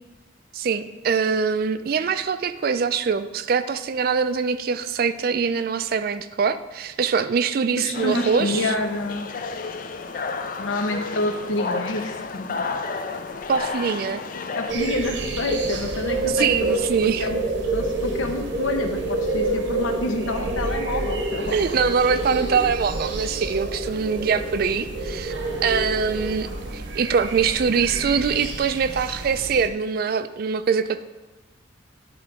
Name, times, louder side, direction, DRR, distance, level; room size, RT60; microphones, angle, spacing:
voice 1, 0.5-8.7 13.5-14.2 16.3-17.3 21.5-25.3 25.6-31.0, right 6 dB, 50° right, 12 dB, 0.3 m, -23 dB
voice 2, 7.8-9.3 10.6-12.6 14.5-17.4 17.7-21.6, left 2 dB, 85° left, 5 dB, 0.9 m, -28 dB
sound 1, 7.9-14.7, left 4 dB, 45° left, 0.4 m, -31 dB
sound 2, 14.7-29.7, right 2 dB, 70° right, 0.9 m, -28 dB
10.0 x 3.8 x 4.6 m, 1.1 s
head